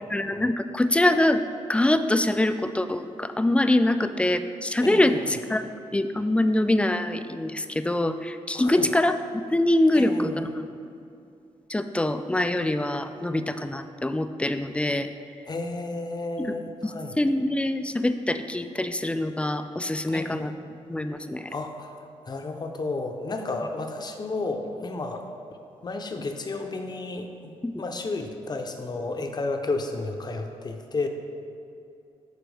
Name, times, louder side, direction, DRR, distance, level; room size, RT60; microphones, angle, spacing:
voice 1, 0.1-1.4 1.7-9.2 9.5-10.7 11.7-15.1 16.4-16.5 16.8-20.5 20.9-21.5 27.6-27.7, left 1 dB, 10° left, 9 dB, 0.3 m, -24 dB
voice 2, 4.8-5.4 8.5-8.9 9.9-10.5 15.5-17.2 20.1-20.5 21.5-22.0 22.3-25.2 25.8-31.1, left 3 dB, 35° left, 4 dB, 0.7 m, -32 dB
11.5 x 4.4 x 3.4 m, 2.6 s
cardioid pair, 80°, 12 cm